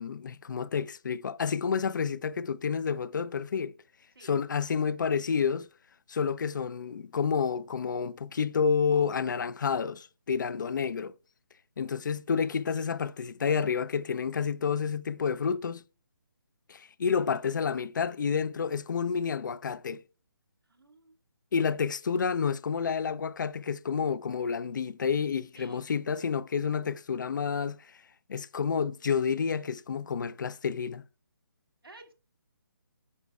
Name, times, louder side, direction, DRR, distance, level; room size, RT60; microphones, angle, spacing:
voice 1, 0.0-3.7 4.2-5.7 6.1-11.1 11.8-15.8 16.7-20.0 21.5-28.0 28.3-31.0, left 6 dB, 55° left, 0.4 m, -29 dB
voice 2, 20.6-21.2 25.5-25.8 31.8-32.1, right 2 dB, 90° right, 1.9 m, -53 dB
9.6 x 6.0 x 2.3 m
figure-of-eight pair, 150°, 12 cm